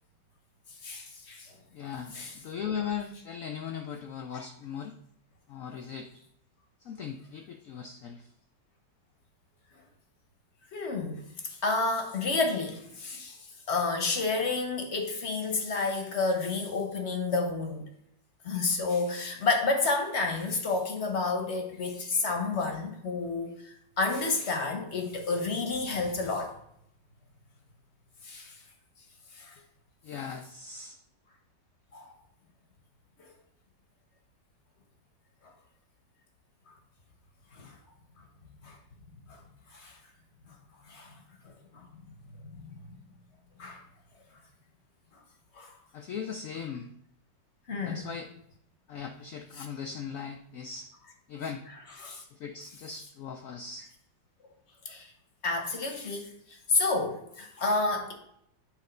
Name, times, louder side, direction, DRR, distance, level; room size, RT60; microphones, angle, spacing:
voice 1, 0.8-1.5 2.1-2.3 4.3-4.5 10.7-13.4 13.7-17.9 18.4-26.5 28.2-28.5 29.3-29.5 31.9-32.1 33.2-33.3 37.5-37.7 38.6-38.8 39.3-39.4 39.7-40.0 40.9-41.1 41.7-41.9 42.4-42.8 43.6-43.8 45.5-45.7 47.7-48.1 49.6-49.7 52.0-52.2 54.8-55.1 55.4-58.1, left 3 dB, 45° left, 1.0 m, -30 dB
voice 2, 1.7-5.0 5.5-6.1 6.8-8.3 30.0-31.0 45.9-46.9 47.8-48.3 48.9-50.9 51.3-51.7 52.3-53.9, left 7 dB, 80° left, 0.7 m, -38 dB
8.7 x 3.3 x 5.1 m
omnidirectional pair, 2.0 m